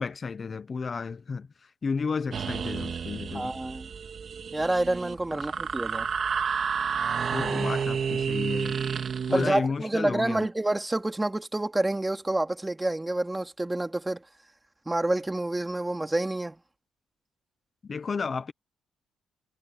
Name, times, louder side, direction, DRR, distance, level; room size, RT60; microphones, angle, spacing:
voice 1, 0.0-3.5 5.3-5.5 7.3-8.8 9.3-10.5 17.9-18.5, left 5 dB, 40° left, 1.0 m, -32 dB
sound 1, 2.3-9.5, right 6 dB, 50° right, 2.7 m, -30 dB
voice 2, 3.3-3.9 4.5-6.1 9.3-14.2 14.9-16.6, right 2 dB, 15° right, 2.8 m, -28 dB
cardioid pair, 90°, 0 cm